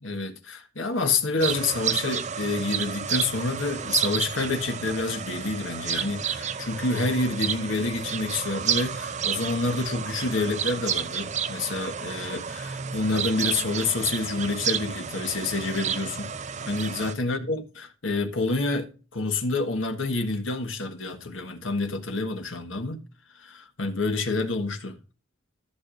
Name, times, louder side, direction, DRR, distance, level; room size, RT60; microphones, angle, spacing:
voice 1, 0.0-16.4 16.6-23.0 23.3-25.0, left 3 dB, 90° left, 1.4 m, -28 dB
sound 1, 1.4-17.1, right 7 dB, 40° right, 0.6 m, -31 dB
14.5 x 6.6 x 2.6 m
head